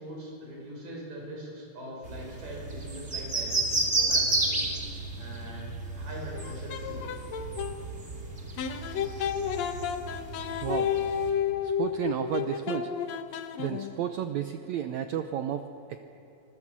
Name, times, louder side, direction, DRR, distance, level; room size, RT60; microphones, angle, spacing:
voice 1, 0.0-4.6 5.2-5.7 5.9-7.0, equal, 65° right, -2 dB, 8.0 m, -42 dB
sound 1, 2.0-11.3, right 2 dB, 25° right, 2.2 m, -32 dB
sound 2, 6.4-7.8 8.6-14.0, left 8 dB, 65° left, 1.8 m, -31 dB
voice 2, 10.6-10.9 11.6-12.9 13.6-16.0, right 9 dB, 80° right, 8 dB, 1.6 m, -32 dB
26.0 x 19.0 x 7.5 m, 3.0 s
omnidirectional pair, 4.1 m